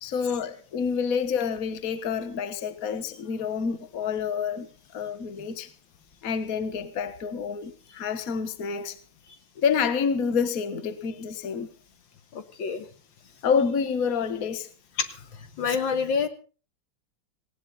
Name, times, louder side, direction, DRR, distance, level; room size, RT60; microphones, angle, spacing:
voice 1, 0.0-4.7 4.9-5.7 6.2-9.0 9.6-11.7 13.4-14.7, left 6 dB, 50° left, 1.6 m, -28 dB
voice 2, 12.3-12.9 15.0-15.1 15.6-16.3, left 6 dB, 70° left, 2.1 m, -27 dB
18.5 x 17.0 x 4.1 m
omnidirectional pair, 2.2 m